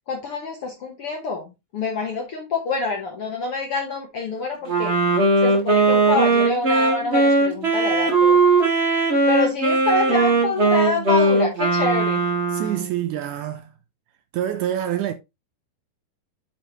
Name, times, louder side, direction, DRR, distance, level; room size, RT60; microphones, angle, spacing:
voice 1, 0.1-4.9 5.4-8.4 9.3-12.2, left 3 dB, 65° left, 1.5 m, -26 dB
Wind instrument woodwind instrument, 4.7-12.9, right 3 dB, 55° right, 0.7 m, -19 dB
voice 2, 12.5-13.7 14.3-15.1, right 11 dB, 80° right, 1.9 m, -26 dB
9.4 x 4.3 x 3.0 m
omnidirectional pair, 4.1 m